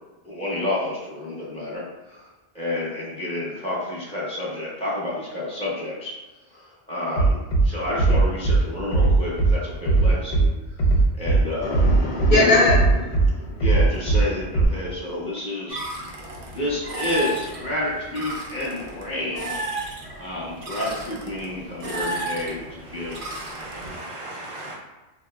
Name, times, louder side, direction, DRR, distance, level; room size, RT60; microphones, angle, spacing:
voice 1, 0.2-2.3 2.5-6.2 6.5-10.5 11.2-11.8 13.6-15.8 16.5-19.6 20.2-23.3, left 1 dB, 5° left, -5 dB, 0.6 m, -29 dB
Bass drum, 7.2-7.6 8.0-8.6 8.9-9.5 9.9-10.5 10.8-11.4 11.7-12.3 12.7-13.3 13.6-14.2 14.5-14.6, right 3 dB, 90° left, 0.9 m, -18 dB
voice 2, 11.6-13.6, left 2 dB, 60° left, -3 dB, 0.5 m, -21 dB
sound 1, 15.7-24.0, right 2 dB, 55° right, 0.4 m, -34 dB
voice 3, 22.9-24.7, right 2 dB, 35° right, -5 dB, 0.7 m, -38 dB
3.4 x 2.0 x 2.3 m, 1.1 s
omnidirectional pair, 1.1 m